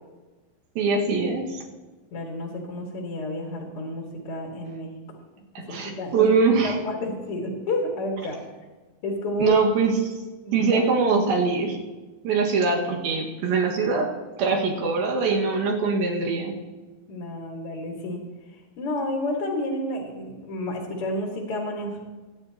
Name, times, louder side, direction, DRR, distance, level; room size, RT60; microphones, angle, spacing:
voice 1, 0.8-1.6 5.5-6.8 9.4-10.1 10.5-11.8 12.2-14.1 14.4-16.6, right 4 dB, 75° right, 0 dB, 3.4 m, -22 dB
voice 2, 2.1-4.9 5.7-6.3 6.6-8.4 9.0-9.6 10.4-10.8 17.1-18.2 18.8-22.0, left 1 dB, 50° left, 0 dB, 1.9 m, -30 dB
22.0 x 9.6 x 2.8 m, 1.3 s
omnidirectional pair, 4.4 m